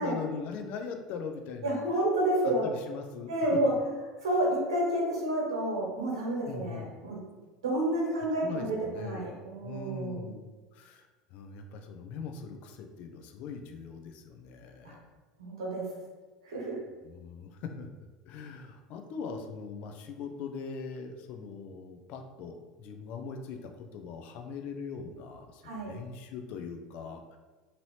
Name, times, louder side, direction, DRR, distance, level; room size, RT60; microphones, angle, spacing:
voice 1, 0.0-1.8 2.4-3.6 6.5-6.9 8.4-9.3 9.6-15.1 17.0-17.9 18.3-27.4, left 5 dB, 55° left, 5 dB, 0.4 m, -41 dB
voice 2, 1.6-2.7 3.3-3.7 4.2-7.2 7.6-10.3 14.8-14.9 15.4-15.8 16.4-16.8 25.6-25.9, right 1 dB, 80° right, -3 dB, 1.1 m, -30 dB
2.8 x 2.7 x 3.1 m, 1.3 s
hypercardioid pair, 80°, 3 cm